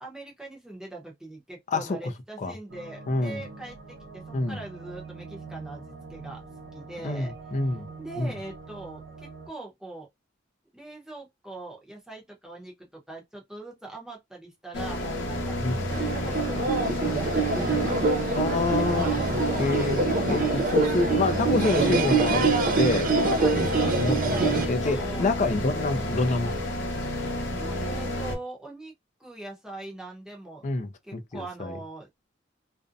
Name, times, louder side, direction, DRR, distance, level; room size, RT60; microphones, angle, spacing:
voice 1, 0.0-6.4 6.7-7.3 7.6-10.1 10.7-15.6 16.0-18.0 18.5-19.7 20.5-20.6 23.2-24.0 24.3-25.3 27.6-28.9 29.2-30.6 31.0-32.1, right 2 dB, 5° right, 0.7 m, -41 dB
sound 1, 2.7-9.5, right 4 dB, 70° right, 0.8 m, -44 dB
voice 2, 3.1-3.4 4.3-4.6 7.0-7.9 8.2-8.3 15.6-15.9 18.4-19.1 19.6-20.0 20.3-23.1 23.8-26.7 27.0-27.1 30.6-31.8, left 3 dB, 40° left, 0.4 m, -27 dB
sound 2, 14.7-28.3, left 1 dB, 65° left, 0.7 m, -30 dB
sound 3, 15.9-24.7, right 4 dB, 45° right, 0.4 m, -25 dB
2.5 x 2.1 x 2.5 m
head